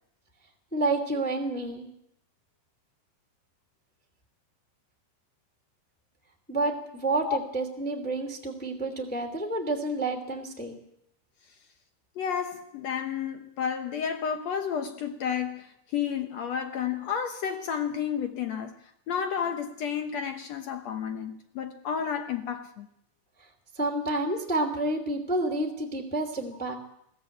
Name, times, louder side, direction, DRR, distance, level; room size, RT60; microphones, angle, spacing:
voice 1, 0.7-1.9 6.5-10.8 23.8-26.7, right 2 dB, 5° left, 2.3 m, -29 dB
voice 2, 12.2-18.7 19.1-22.9, left 8 dB, 65° left, 2.0 m, -31 dB
21.5 x 15.0 x 8.6 m
omnidirectional pair, 3.7 m